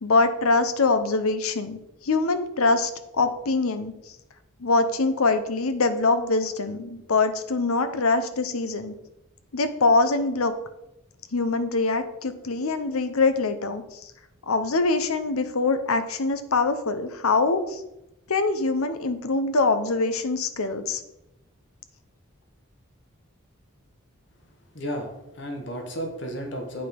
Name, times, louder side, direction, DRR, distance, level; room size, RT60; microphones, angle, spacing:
voice 1, 0.0-3.9 4.6-8.9 9.5-10.5 11.3-14.0 14.5-17.8 18.3-21.0, left 3 dB, 90° left, 10 dB, 0.9 m, -24 dB
voice 2, 24.7-26.9, equal, 55° left, 3 dB, 1.5 m, -33 dB
8.9 x 5.5 x 5.3 m, 0.89 s
head